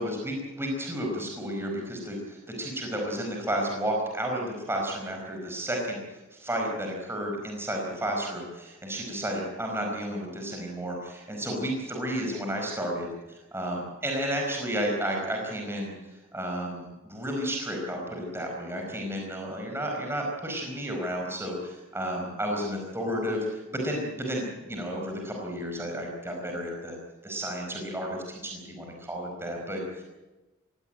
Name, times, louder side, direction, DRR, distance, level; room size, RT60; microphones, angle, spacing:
voice 1, 0.0-27.0 27.2-30.0, equal, 10° right, 0 dB, 4.7 m, -32 dB
21.5 x 17.5 x 9.1 m, 1.1 s
head